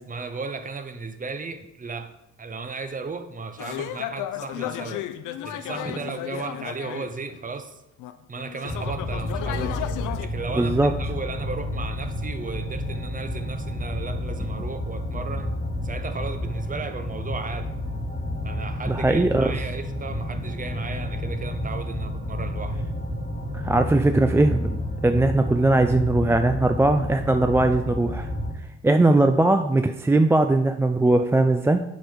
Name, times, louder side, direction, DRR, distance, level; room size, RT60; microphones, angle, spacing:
voice 1, 0.1-5.1 5.4-7.8 8.3-9.8 10.2-15.5 15.8-17.7 18.4-22.8, right 4 dB, 25° right, 9 dB, 0.8 m, -35 dB
sound 1, 3.6-7.5 8.0-10.3, left 11 dB, 85° left, 0.6 m, -33 dB
sound 2, 8.7-28.5, left 1 dB, 25° left, 1.3 m, -30 dB
voice 2, 10.5-11.0 18.9-19.5 23.5-28.3 28.8-31.8, right 2 dB, 10° right, 6 dB, 0.3 m, -20 dB
7.8 x 4.5 x 5.2 m, 0.90 s
cardioid pair, 90°, 30 cm